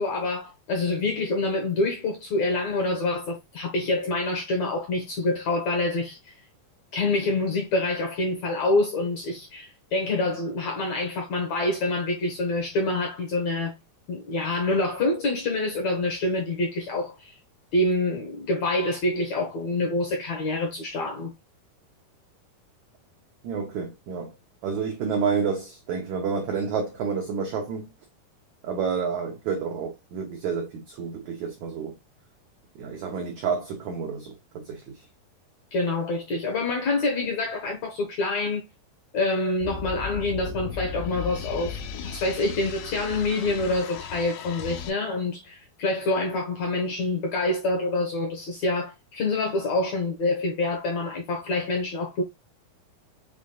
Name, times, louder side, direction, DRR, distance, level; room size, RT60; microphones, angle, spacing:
voice 1, 0.0-6.3 6.9-13.7 14.1-17.4 17.7-21.3 35.7-38.7 39.1-52.2, left 2 dB, 70° left, 1.7 m, -26 dB
voice 2, 23.4-24.4 24.6-27.9 28.6-31.9 32.8-35.1, right 6 dB, 85° right, 1.6 m, -29 dB
sound 1, 39.6-44.9, left 6 dB, 85° left, 2.9 m, -36 dB
6.2 x 3.7 x 2.2 m
omnidirectional pair, 4.5 m